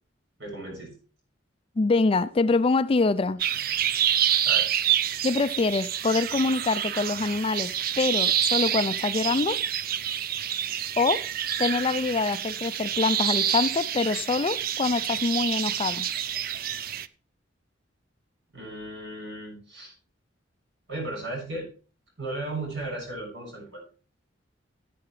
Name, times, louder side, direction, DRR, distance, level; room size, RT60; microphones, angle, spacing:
voice 1, 0.4-0.9 4.4-4.7 18.5-19.9 20.9-21.7 22.2-23.8, right 2 dB, 65° right, 6.8 m, -35 dB
voice 2, 1.8-3.4 5.2-9.6 11.0-11.2 11.6-16.1, left 3 dB, 30° left, 0.4 m, -25 dB
sound 1, 3.4-17.1, right 10 dB, 50° right, 0.4 m, -27 dB
15.0 x 8.5 x 3.2 m
head